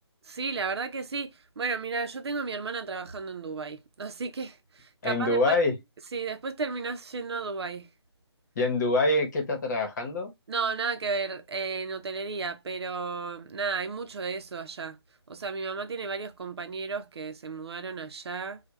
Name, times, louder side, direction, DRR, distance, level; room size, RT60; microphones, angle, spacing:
voice 1, 0.3-1.3 1.6-5.6 6.1-7.9 10.5-15.0 15.3-18.6, right 4 dB, 65° right, 0.6 m, -33 dB
voice 2, 5.0-5.7 8.6-10.3, left 2 dB, 40° left, 1.1 m, -25 dB
3.3 x 2.3 x 3.1 m
hypercardioid pair, 160°, 14 cm